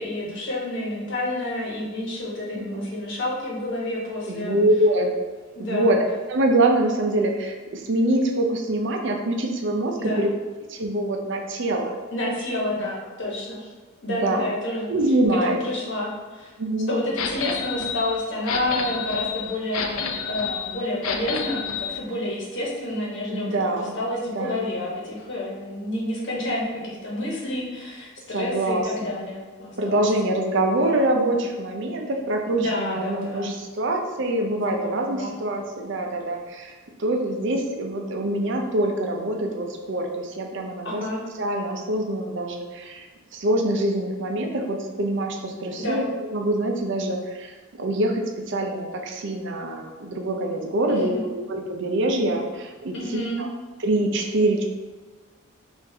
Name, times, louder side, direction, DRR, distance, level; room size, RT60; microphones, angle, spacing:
voice 1, 0.0-4.6 5.5-5.9 10.0-10.2 12.1-13.7 14.0-14.9 15.3-16.5 16.9-20.0 20.3-30.0 32.5-33.5 34.5-35.3 40.8-41.2 45.8-46.0 50.9-51.3 52.9-53.4, left 1 dB, 60° left, -3 dB, 1.1 m, -29 dB
voice 2, 2.6-2.9 4.3-5.1 5.6-6.0 6.3-10.3 10.7-12.0 14.1-14.4 14.9-15.6 16.6-17.0 23.3-23.9 24.3-24.6 28.3-29.2 29.8-36.7 37.0-41.0 41.4-43.1 43.3-53.5 53.8-54.6, right 1 dB, 60° right, 2 dB, 0.5 m, -25 dB
Cash Register Sound Effect, 17.2-22.0, left 6 dB, 80° left, 0.4 m, -30 dB
5.8 x 2.6 x 2.7 m, 1.3 s
head